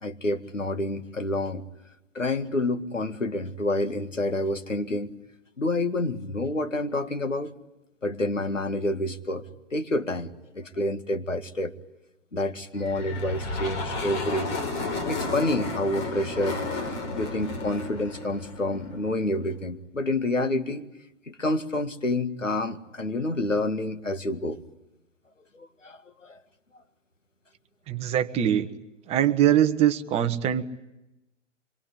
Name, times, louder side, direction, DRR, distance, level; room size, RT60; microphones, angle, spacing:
voice 1, 0.0-1.7 2.1-5.1 5.6-7.5 8.0-11.7 12.3-14.6 15.1-16.6 17.1-20.9 21.3-24.6 25.6-26.4, left 1 dB, 85° left, 2.0 m, -28 dB
sound 1, 12.8-19.2, left 3 dB, 30° left, 4.7 m, -32 dB
voice 2, 27.9-28.7 29.1-30.6, right 10 dB, 15° right, 1.1 m, -22 dB
25.5 x 22.5 x 10.0 m
figure-of-eight pair, 120°, 37 cm